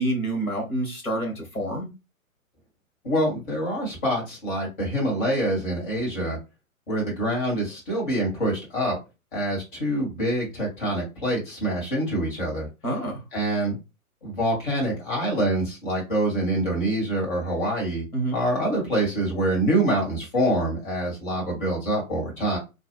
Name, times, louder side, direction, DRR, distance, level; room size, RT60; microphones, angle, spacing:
voice 1, 0.0-1.9 12.8-13.2 18.1-18.4, right 1 dB, 85° left, 1.6 m, -27 dB
voice 2, 3.0-6.4 6.9-9.0 9.3-12.7 13.3-13.8 14.2-18.1 18.3-22.6, right 1 dB, 35° left, 2.1 m, -25 dB
3.1 x 2.5 x 3.0 m
figure-of-eight pair, 125°, 43 cm